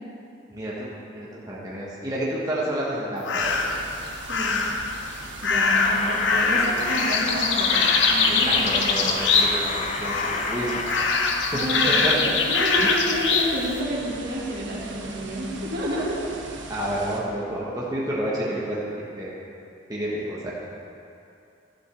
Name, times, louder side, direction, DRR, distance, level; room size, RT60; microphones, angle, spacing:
voice 1, 0.5-3.8 8.3-10.8 12.0-12.1 12.7-12.9 16.7-19.3 19.9-20.5, right 1 dB, 20° right, -7 dB, 1.3 m, -30 dB
sound 1, 3.2-3.8 4.3-4.9 5.4-9.8 10.0-10.5 10.9-13.5, left 4 dB, 70° left, 0.9 m, -22 dB
sound 2, 3.4-17.2, right 3 dB, 85° right, 1.2 m, -40 dB
voice 2, 4.2-4.6 5.4-8.9 11.5-12.2 12.5-16.2, right 1 dB, 60° right, -5 dB, 2.4 m, -30 dB
sound 3, 5.7-11.6, left 4 dB, 40° left, 0.7 m, -31 dB
11.5 x 5.5 x 6.9 m, 2.6 s
head